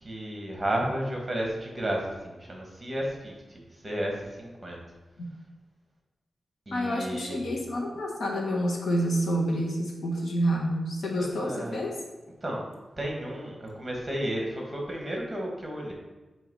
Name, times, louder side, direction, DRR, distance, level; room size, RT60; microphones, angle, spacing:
voice 1, 0.0-4.8 6.7-7.4 11.2-11.8 12.4-12.6 13.0-15.9, right 1 dB, 15° right, -1 dB, 1.5 m, -33 dB
voice 2, 6.7-12.0, equal, 70° left, -1 dB, 1.4 m, -28 dB
8.9 x 3.0 x 5.4 m, 1.1 s
wide cardioid pair, 170°, 0 cm